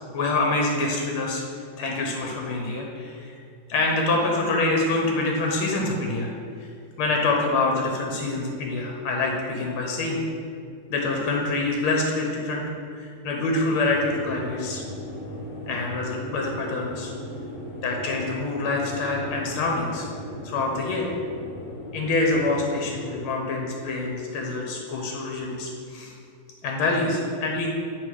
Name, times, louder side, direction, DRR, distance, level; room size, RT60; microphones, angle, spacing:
voice 1, 0.1-1.4 1.8-3.4 3.7-6.3 6.6-6.7 7.0-10.2 10.9-12.6 12.9-14.8 15.7-17.1 17.8-20.1 20.4-21.1 21.9-26.2 26.6-27.7, left 2 dB, 85° left, 0 dB, 1.7 m, -26 dB
sound 1, 13.8-23.2, left 1 dB, 65° left, 1.7 m, -38 dB
8.3 x 3.9 x 4.7 m, 2.3 s
omnidirectional pair, 2.3 m